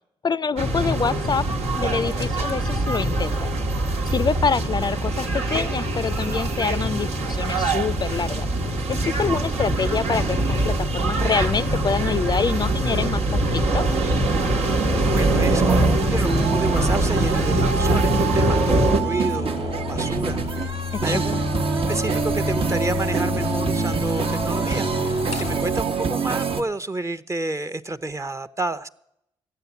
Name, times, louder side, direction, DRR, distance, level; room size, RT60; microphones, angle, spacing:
voice 1, 0.2-1.5 1.7-3.5 4.1-8.5 8.9-13.8 20.9-21.2, left 5 dB, 40° left, 0.4 m, -26 dB
sound 1, 0.6-19.0, right 2 dB, 75° right, 1.3 m, -23 dB
sound 2, 11.4-25.8, left 8 dB, 90° left, 0.6 m, -32 dB
sound 3, 15.0-26.6, right 5 dB, 55° right, 1.1 m, -26 dB
voice 2, 15.1-20.8 21.0-21.4 21.9-28.9, right 2 dB, 25° right, 0.8 m, -30 dB
13.0 x 8.7 x 8.2 m
supercardioid pair, 50°, 11 cm